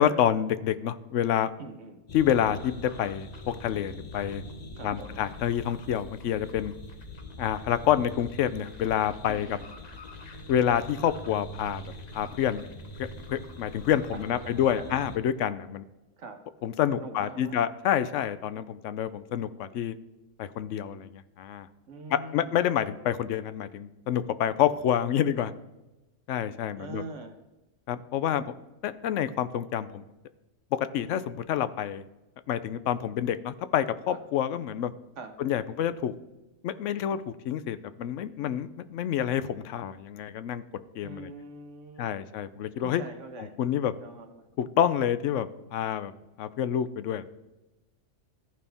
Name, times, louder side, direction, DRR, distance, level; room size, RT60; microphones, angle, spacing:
voice 1, 0.0-1.5 2.1-4.4 4.8-6.7 7.4-9.6 10.5-12.6 13.0-15.8 16.6-19.9 20.4-21.7 22.1-25.5 26.3-27.0 27.9-28.4 28.8-30.0 30.7-32.0 32.5-34.9 35.4-36.1 36.6-40.6 40.9-41.3 42.0-43.0 43.4-43.9 44.6-46.1 46.4-47.2, left 10 dB, 80° left, 13 dB, 0.9 m, -28 dB
voice 2, 1.6-2.0 4.8-5.2 9.3-9.7 14.1-15.1 16.2-16.4 16.9-17.6 21.9-22.6 26.8-27.4 34.1-34.2 35.2-35.3 41.0-42.1 42.8-43.6 44.0-44.5, right 3 dB, 80° right, 6 dB, 1.4 m, -43 dB
sound 1, 2.1-15.2, left 1 dB, 40° left, 0.9 m, -43 dB
14.5 x 5.5 x 3.4 m, 1.0 s
omnidirectional pair, 1.3 m